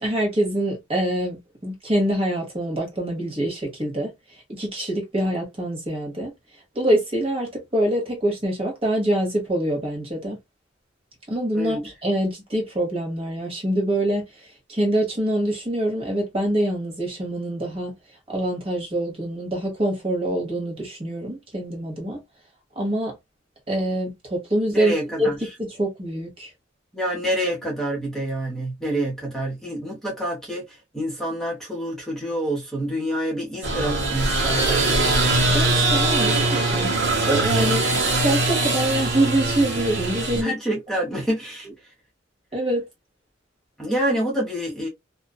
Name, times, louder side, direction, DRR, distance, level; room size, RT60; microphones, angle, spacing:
voice 1, 0.0-4.1 4.5-6.3 6.7-10.4 11.3-14.3 14.7-17.9 18.3-22.2 22.8-23.1 23.7-24.9 25.2-25.3 25.6-26.5 35.5-36.9 37.3-37.8 38.1-40.5 42.5-42.8, right 1 dB, 30° right, 1.0 m, -25 dB
voice 2, 24.7-25.4 26.9-35.0 40.3-41.7 43.8-44.9, right 1 dB, ahead, 0.9 m, -27 dB
sound 1, 33.6-40.4, right 2 dB, 60° right, 1.1 m, -22 dB
2.5 x 2.3 x 2.2 m
head